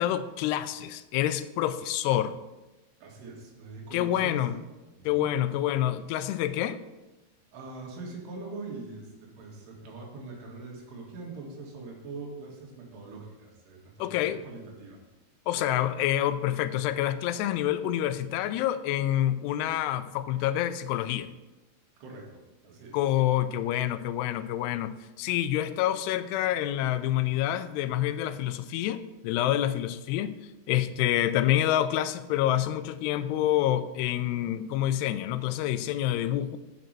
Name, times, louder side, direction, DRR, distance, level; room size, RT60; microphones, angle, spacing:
voice 1, 0.0-2.4 3.9-4.6 5.1-6.8 14.0-14.4 15.5-21.3 22.9-30.3 30.7-36.6, left 12 dB, 90° left, 12 dB, 2.7 m, -27 dB
voice 2, 3.0-4.6 5.0-5.3 7.5-15.0 22.0-23.0, right 3 dB, 90° right, -1 dB, 4.0 m, -43 dB
8.1 x 5.2 x 7.4 m, 1.1 s
omnidirectional pair, 4.6 m